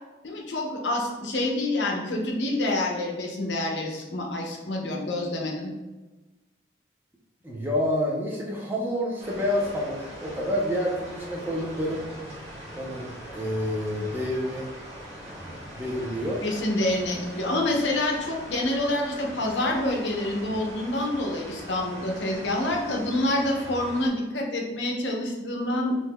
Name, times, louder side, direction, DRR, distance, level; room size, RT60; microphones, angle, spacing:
voice 1, 0.2-5.7 16.4-26.0, left 1 dB, 80° left, 0 dB, 0.8 m, -27 dB
voice 2, 7.4-12.1 12.7-14.7 15.8-16.4, left 1 dB, 10° right, -3 dB, 0.5 m, -28 dB
sound 1, 9.2-24.1, equal, 35° right, 1.2 m, -41 dB
5.3 x 3.1 x 2.2 m, 1.1 s
head